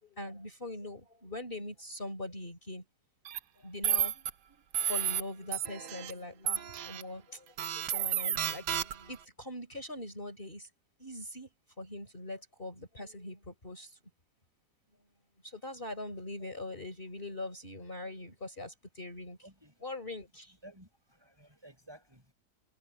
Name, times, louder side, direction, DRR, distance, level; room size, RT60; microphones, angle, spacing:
voice 1, 0.0-2.9 3.6-10.7 11.0-11.5 11.8-14.0 15.4-19.4 19.8-20.6, left 2 dB, 30° left, 4.3 m, -42 dB
sound 1, 3.2-3.4 3.8-4.3 4.7-5.2 5.5-6.1 6.5-7.0 7.6-9.1, right 9 dB, 75° right, 1.4 m, -32 dB
voice 2, 19.4-19.9 20.6-22.3, right 1 dB, 15° right, 6.4 m, -55 dB
omnidirectional pair, 1.9 m